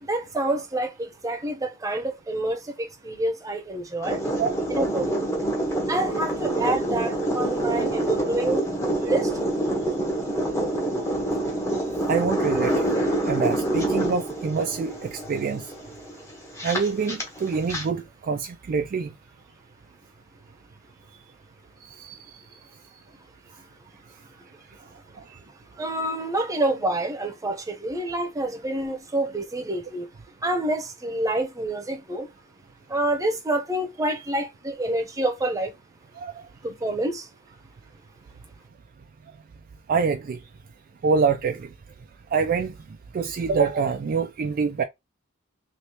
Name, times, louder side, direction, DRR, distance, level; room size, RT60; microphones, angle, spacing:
voice 1, 0.0-4.2 4.7-5.1 5.9-8.7 9.0-9.3 25.8-30.1 30.4-32.3 32.9-35.7 36.6-37.3, right 1 dB, 15° right, 0.8 m, -27 dB
sound 1, 4.0-17.8, right 1 dB, 15° left, 1.0 m, -26 dB
voice 2, 12.1-15.7 16.6-19.1 21.8-22.3 36.2-36.3 39.9-40.4 41.0-41.7 42.3-42.7 43.1-44.8, right 5 dB, 45° right, 0.3 m, -26 dB
3.2 x 3.1 x 2.8 m
head